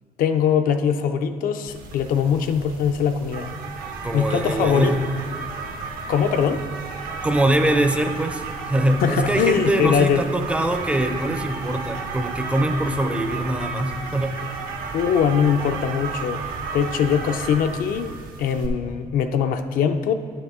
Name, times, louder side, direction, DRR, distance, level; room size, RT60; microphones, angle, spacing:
voice 1, 0.2-3.5 4.1-4.9 6.1-6.6 9.0-10.2 14.9-16.4 16.7-20.1, left 7 dB, 75° left, 8 dB, 0.5 m, -22 dB
sound 1, 1.7-18.7, right 4 dB, 90° right, 0.9 m, -33 dB
voice 2, 4.0-5.1 7.2-14.4, right 1 dB, 10° right, 6 dB, 0.4 m, -23 dB
9.8 x 6.5 x 3.6 m, 2.1 s
cardioid pair, 150°, 15 cm